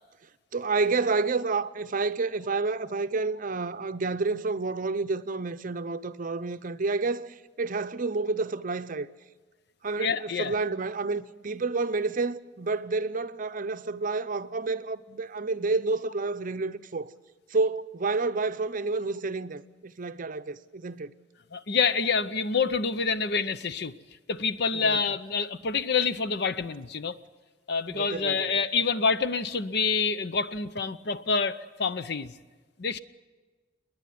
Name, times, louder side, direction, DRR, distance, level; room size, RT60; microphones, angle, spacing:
voice 1, 0.5-9.1 9.8-17.1 17.5-21.1 24.7-25.0 27.9-28.5, right 3 dB, 45° right, 0.7 m, -29 dB
voice 2, 10.0-10.5 21.5-23.9 24.3-27.2 27.7-32.3 32.8-33.0, left 5 dB, 60° left, 0.8 m, -27 dB
29.0 x 10.5 x 9.4 m
head